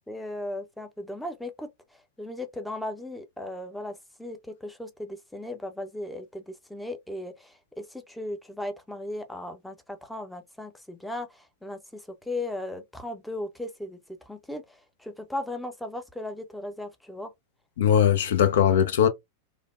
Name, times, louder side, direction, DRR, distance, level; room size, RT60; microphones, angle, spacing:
voice 1, 0.1-1.7 2.2-17.3, left 1 dB, 5° left, 0.5 m, -37 dB
voice 2, 17.8-19.1, left 9 dB, 60° left, 0.4 m, -20 dB
3.2 x 2.0 x 2.3 m
figure-of-eight pair, 90°, 0 cm